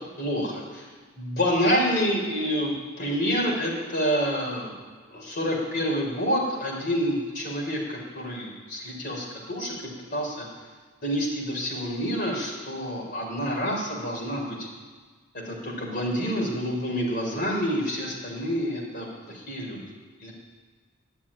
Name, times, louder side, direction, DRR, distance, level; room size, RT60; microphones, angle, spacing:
voice 1, 0.2-0.9 1.2-4.8 5.1-9.8 10.1-10.4 11.0-14.7 15.3-19.8 20.2-20.3, equal, 50° left, -2 dB, 4.2 m, -28 dB
11.5 x 7.4 x 10.0 m, 1.5 s
head